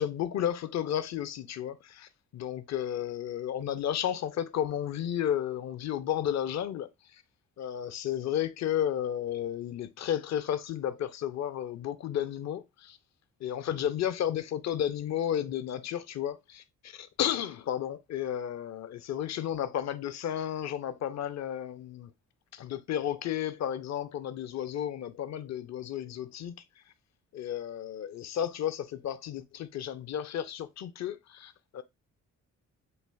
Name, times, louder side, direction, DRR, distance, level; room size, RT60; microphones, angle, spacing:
voice 1, 0.0-7.2 7.6-13.0 13.4-22.1 22.5-26.6 27.3-31.8, left 10 dB, 45° left, 0.6 m, -33 dB
6.4 x 2.5 x 2.3 m
hypercardioid pair, 45°, 37 cm